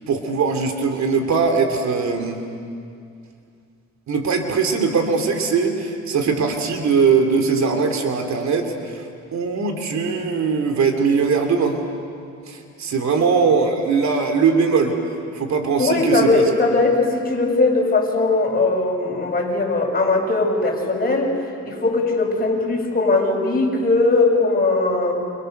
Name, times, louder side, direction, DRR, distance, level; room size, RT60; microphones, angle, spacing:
voice 1, 0.1-2.4 4.1-11.8 12.5-15.0 15.3-16.4, right 5 dB, 65° right, 4 dB, 3.2 m, -20 dB
voice 2, 15.8-21.3 21.6-25.2, left 3 dB, 30° left, -1 dB, 7.0 m, -19 dB
29.5 x 27.5 x 6.8 m, 2.3 s
cardioid pair, 90°, 30 cm